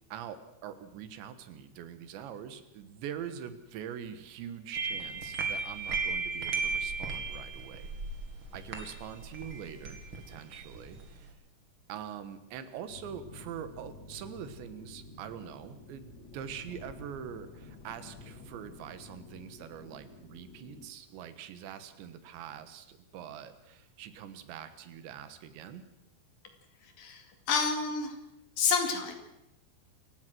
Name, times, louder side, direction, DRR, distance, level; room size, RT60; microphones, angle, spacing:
voice 1, 0.1-7.9 8.5-11.3 11.9-25.8, right 9 dB, 85° right, 11 dB, 3.7 m, -44 dB
sound 1, 4.7-11.3, right 4 dB, 35° right, 2.4 m, -36 dB
sound 2, 12.9-20.9, left 3 dB, 25° left, 2.5 m, -50 dB
voice 2, 26.8-28.2 28.6-29.2, left 5 dB, 60° left, 6 dB, 3.7 m, -29 dB
28.0 x 16.0 x 6.2 m, 0.86 s
omnidirectional pair, 5.1 m